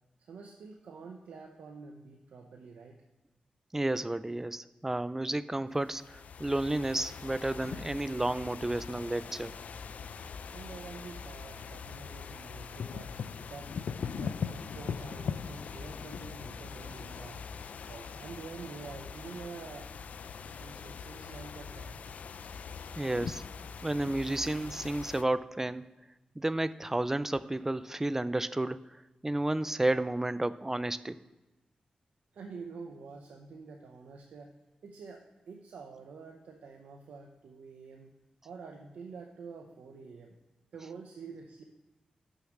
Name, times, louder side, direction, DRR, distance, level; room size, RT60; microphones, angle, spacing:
voice 1, 0.2-3.0 10.5-13.2 13.5-13.8 14.1-17.4 17.9-19.9 20.6-22.2 32.3-34.5 34.8-38.1 38.4-40.3 40.7-41.6, right 4 dB, 90° right, 2 dB, 0.7 m, -47 dB
voice 2, 3.7-9.5 23.0-23.4 23.8-25.9 26.4-28.8 29.2-31.2, right 1 dB, 15° right, 15 dB, 0.4 m, -31 dB
sound 1, 5.7-25.2, left 6 dB, 75° left, 0.3 m, -41 dB
6.5 x 6.3 x 5.9 m, 1.1 s
cardioid pair, 70°, 2 cm